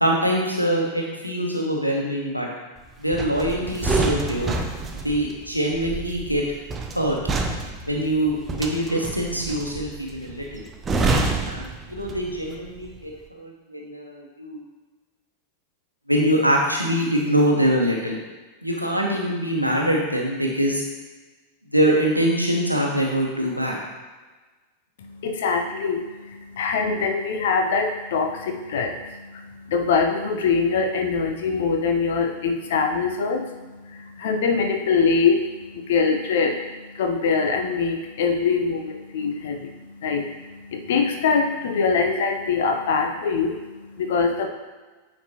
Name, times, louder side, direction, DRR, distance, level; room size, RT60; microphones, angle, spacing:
voice 1, 0.0-2.5 3.0-4.5 5.0-6.4 6.9-7.2 7.9-10.6 11.4-14.6 16.1-18.2 18.6-20.8 21.7-23.8, equal, 90° right, -1 dB, 1.1 m, -23 dB
sound 1, 3.1-12.5 12.8-13.0, right 3 dB, 20° right, 0.7 m, -27 dB
voice 2, 25.0-44.5, left 5 dB, 55° left, 4 dB, 0.7 m, -24 dB
9.1 x 4.4 x 2.9 m, 1.2 s
figure-of-eight pair, 90°, 0 cm